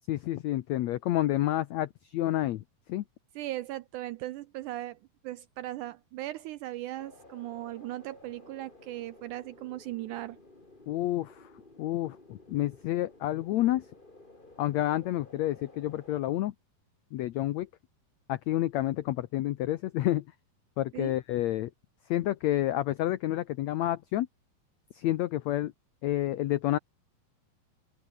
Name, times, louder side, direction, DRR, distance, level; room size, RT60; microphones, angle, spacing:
voice 1, 0.1-2.6 2.9-3.0 10.9-11.5 11.8-13.8 14.6-16.5 17.1-17.7 18.3-20.2 20.8-21.7 22.1-24.3 24.9-25.7 26.0-26.8, left 14 dB, 85° left, 1.5 m, -29 dB
voice 2, 3.4-5.0 5.2-10.4 20.9-21.2, right 15 dB, 80° right, 1.8 m, -38 dB
sound 1, 7.0-16.2, left 2 dB, 15° left, 3.1 m, -54 dB
omnidirectional pair, 4.2 m